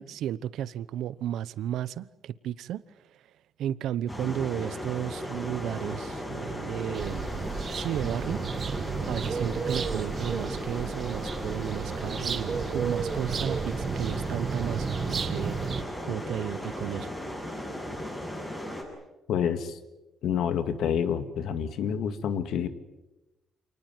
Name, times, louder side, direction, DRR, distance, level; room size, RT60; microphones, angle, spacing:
voice 1, 0.0-3.2 3.6-7.3 7.7-15.6 16.0-17.1, right 11 dB, 75° right, 0.9 m, -33 dB
sound 1, 4.1-18.8, equal, 15° left, 7.4 m, -36 dB
sound 2, 6.9-15.8, right 5 dB, 35° right, 1.7 m, -33 dB
voice 2, 19.3-19.8 20.2-22.7, left 8 dB, 70° left, 2.1 m, -28 dB
28.5 x 19.5 x 9.4 m
cardioid pair, 155°, 0 cm